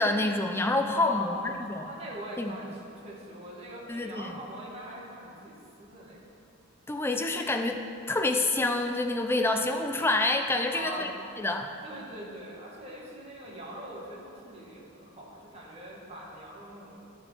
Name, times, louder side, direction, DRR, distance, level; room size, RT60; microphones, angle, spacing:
voice 1, 0.0-1.9 2.4-2.5 3.9-4.4 6.9-11.1 11.4-11.7, left 2 dB, 10° left, 5 dB, 0.4 m, -27 dB
voice 2, 0.9-6.2 10.7-11.1 11.8-17.0, right 1 dB, 30° right, -5 dB, 1.7 m, -42 dB
11.0 x 4.4 x 5.6 m, 2.5 s
head